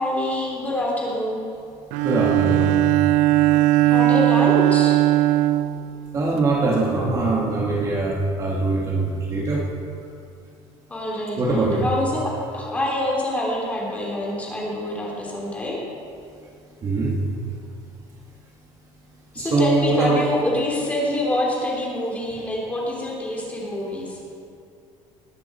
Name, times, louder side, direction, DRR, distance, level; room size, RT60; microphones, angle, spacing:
voice 1, 0.0-1.4 3.5-5.0 10.9-15.8 19.3-24.2, left 1 dB, 10° left, -3 dB, 3.2 m, -26 dB
Bowed string instrument, 1.9-6.5, right 15 dB, 90° right, 0.5 m, -19 dB
voice 2, 2.0-2.8 6.1-9.6 11.4-11.8 16.8-17.2 19.4-20.2, right 3 dB, 30° right, -3 dB, 2.0 m, -22 dB
20.0 x 12.5 x 4.5 m, 2.5 s
cardioid pair, 165°, 12 cm